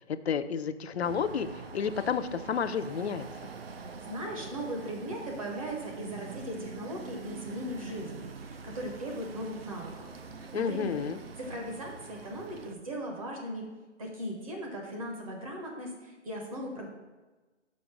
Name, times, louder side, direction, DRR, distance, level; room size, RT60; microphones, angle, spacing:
voice 1, 0.1-3.3 10.5-11.2, left 7 dB, 60° left, 11 dB, 0.5 m, -31 dB
sound 1, 1.0-12.7, right 4 dB, 55° right, 0.6 m, -45 dB
voice 2, 4.0-10.1 10.4-10.9 11.4-13.6 14.0-16.9, equal, 30° right, -1 dB, 1.1 m, -38 dB
5.2 x 4.3 x 5.9 m, 1.2 s
hypercardioid pair, 160°, 37 cm